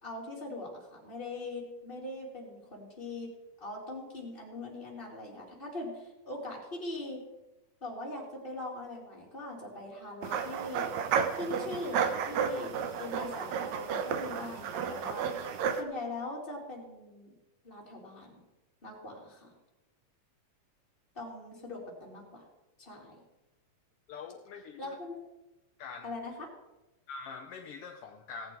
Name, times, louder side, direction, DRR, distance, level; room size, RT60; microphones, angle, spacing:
voice 1, 0.0-3.3 3.6-7.2 7.8-10.9 11.3-15.3 15.7-17.3 17.6-18.4 18.8-19.5 21.1-22.4 22.8-23.2 24.8-25.2 26.0-26.5, left 2 dB, 15° left, -4 dB, 3.3 m, -41 dB
sound 1, 10.2-15.8, right 7 dB, 70° right, 2.2 m, -32 dB
voice 2, 24.1-24.9 25.8-26.2 27.1-28.6, left 5 dB, 75° left, 4 dB, 1.4 m, -44 dB
18.0 x 8.7 x 4.6 m, 1.0 s
omnidirectional pair, 3.4 m